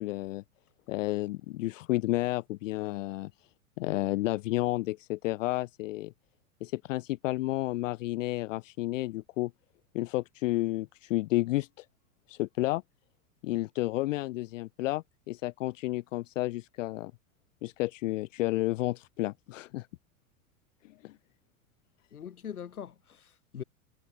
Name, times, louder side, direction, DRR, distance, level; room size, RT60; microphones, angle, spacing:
voice 1, 0.0-0.4 0.9-3.3 3.8-6.1 6.6-9.5 9.9-11.8 12.3-12.8 13.4-17.1 17.6-19.9 21.0-21.1, left 18 dB, 60° left, 0.5 m, -31 dB
voice 2, 22.1-23.6, left 8 dB, 80° left, 3.9 m, -42 dB
hypercardioid pair, 95°, 43 cm